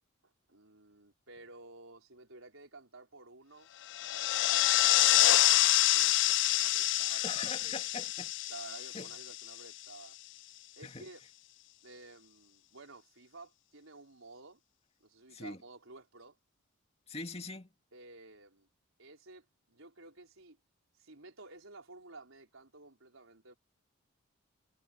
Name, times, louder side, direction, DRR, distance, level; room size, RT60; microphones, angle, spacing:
voice 1, 0.2-3.7 4.8-5.2 5.5-7.8 8.5-10.2 10.8-11.2 11.8-14.6 15.0-16.4 17.9-18.7 19.0-20.6 21.0-23.6, right 3 dB, 75° right, 4.6 m, -53 dB
sound 1, 3.9-9.7, left 15 dB, 60° left, 0.4 m, -27 dB
voice 2, 7.1-8.3 8.9-9.1 10.8-11.1 15.3-15.6 17.1-17.7, left 3 dB, 30° left, 2.2 m, -42 dB
head